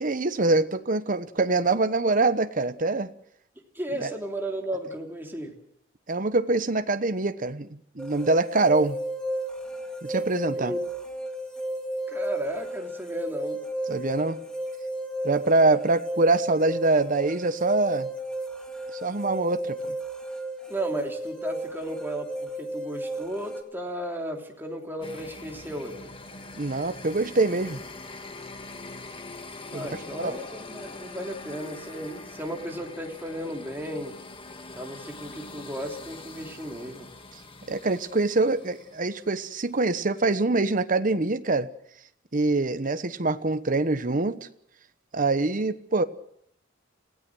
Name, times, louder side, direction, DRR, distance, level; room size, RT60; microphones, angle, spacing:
voice 1, 0.0-3.1 4.0-4.1 6.1-9.0 10.0-10.8 13.9-14.4 15.2-18.1 19.0-20.0 26.6-27.8 29.7-30.3 37.7-41.7 42.3-44.4 45.1-46.0, right 3 dB, 45° right, 10 dB, 1.0 m, -24 dB
voice 2, 3.7-5.5 10.6-10.8 12.1-13.6 20.7-26.1 29.7-34.1 34.7-37.1, right 1 dB, 10° right, 1 dB, 3.3 m, -34 dB
sound 1, 8.0-23.6, right 1 dB, 5° left, 2.7 m, -33 dB
sound 2, 25.0-39.8, left 3 dB, 25° left, 1.6 m, -43 dB
29.0 x 16.5 x 6.3 m, 0.70 s
head